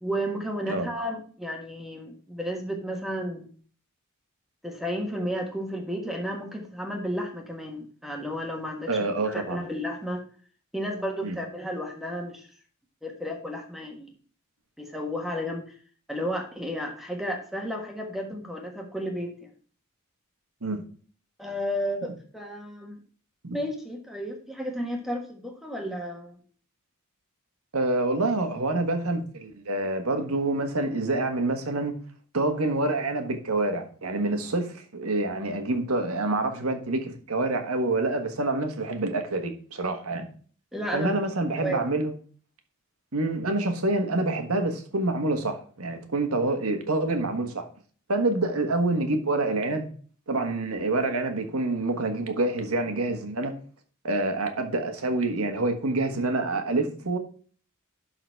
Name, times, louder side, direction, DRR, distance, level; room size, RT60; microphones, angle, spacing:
voice 1, 0.0-3.5 4.6-9.0 9.2-10.2 10.7-12.5 13.0-14.1 14.8-15.7 16.1-19.5 21.4-23.0 23.5-26.4 40.7-41.2 41.5-41.8, equal, ahead, 1.4 m, -32 dB
voice 2, 8.9-9.6 11.2-11.3 20.6-20.8 23.4-23.6 27.7-31.9 32.3-40.3 40.9-42.2 43.1-47.7 48.1-49.9 50.3-53.5 54.0-57.2, right 2 dB, 90° right, 1.5 m, -27 dB
11.5 x 4.0 x 4.6 m
head